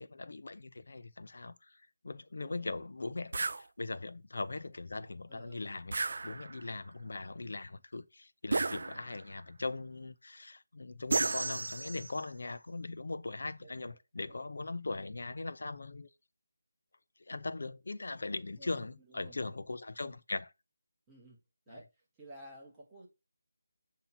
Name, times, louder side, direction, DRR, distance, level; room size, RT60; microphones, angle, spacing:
voice 1, 0.0-6.0 6.2-16.1 17.2-20.5 21.7-21.8, left 3 dB, 50° left, 0.5 m, -40 dB
voice 2, 2.4-2.8 5.3-5.6 13.6-14.0 18.6-19.5 21.1-21.4 21.7-21.9 22.2-23.1, right 1 dB, 5° right, 0.9 m, -53 dB
sound 1, 3.3-3.6 5.9-6.7 8.5-9.3 11.1-12.2, right 3 dB, 45° right, 0.3 m, -33 dB
7.0 x 2.8 x 5.7 m
figure-of-eight pair, 180°, 0 cm